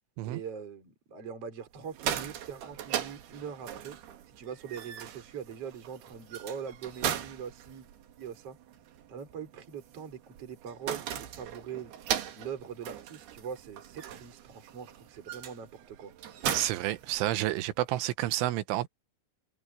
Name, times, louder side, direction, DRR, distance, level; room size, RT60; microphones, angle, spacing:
voice 1, 0.2-4.0 4.4-7.9 8.2-8.6 9.1-11.9 12.3-16.1, right 7 dB, 30° right, 4.5 m, -42 dB
sound 1, 1.8-17.7, right 10 dB, 60° right, 3.3 m, -39 dB
voice 2, 16.5-18.9, right 15 dB, 80° right, 3.4 m, -30 dB
omnidirectional pair, 5.7 m